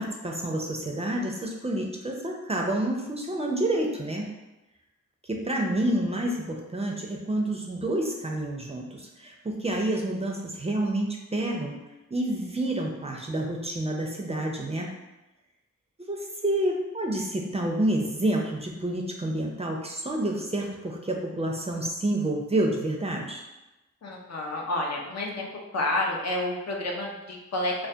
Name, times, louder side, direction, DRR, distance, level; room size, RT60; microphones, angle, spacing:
voice 1, 0.0-4.3 5.3-11.8 12.1-14.9 16.1-23.4, right 1 dB, 20° right, 0 dB, 0.4 m, -28 dB
voice 2, 24.0-25.5 25.7-27.7, left 1 dB, 60° left, -1 dB, 0.5 m, -29 dB
2.2 x 2.1 x 2.6 m, 1.0 s
cardioid pair, 50°, 29 cm